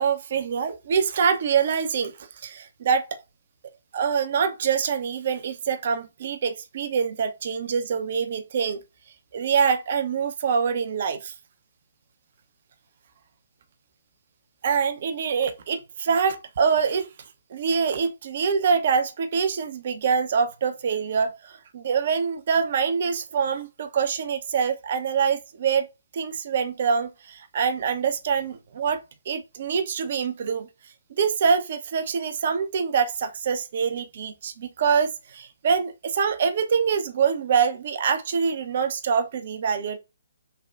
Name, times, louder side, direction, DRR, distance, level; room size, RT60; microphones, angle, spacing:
voice 1, 0.0-2.1 2.4-3.2 3.9-8.8 9.3-11.3 14.6-17.1 17.5-25.9 26.1-29.0 29.3-30.7 31.2-40.0, right 6 dB, 45° right, 0.4 m, -25 dB
3.3 x 2.0 x 2.2 m
figure-of-eight pair, 130°, 0 cm